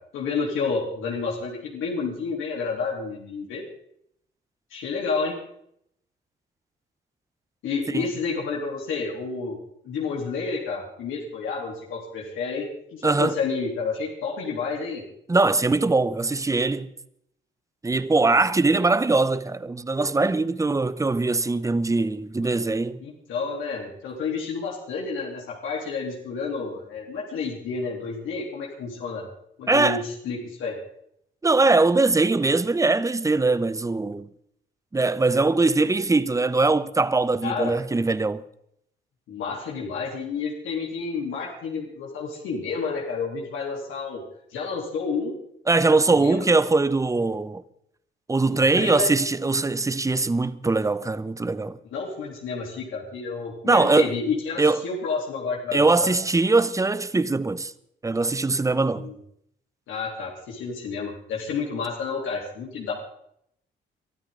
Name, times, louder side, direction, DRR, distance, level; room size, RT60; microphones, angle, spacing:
voice 1, 0.1-3.7 4.7-5.4 7.6-9.6 9.8-15.0 23.0-29.3 29.6-30.8 37.4-37.8 39.3-44.2 44.5-45.4 46.1-46.5 48.5-49.1 51.9-56.1 58.9-59.2 59.9-62.9, left 4 dB, 85° left, 3.5 m, -30 dB
voice 2, 13.0-13.4 15.3-16.9 17.8-23.0 29.7-30.0 31.4-34.3 34.9-38.4 45.7-47.6 48.3-51.8 53.6-54.1 54.6-54.8 55.7-57.7 58.0-59.1, right 3 dB, 15° right, 0.9 m, -21 dB
23.5 x 13.0 x 3.9 m
cardioid pair, 90°, 20 cm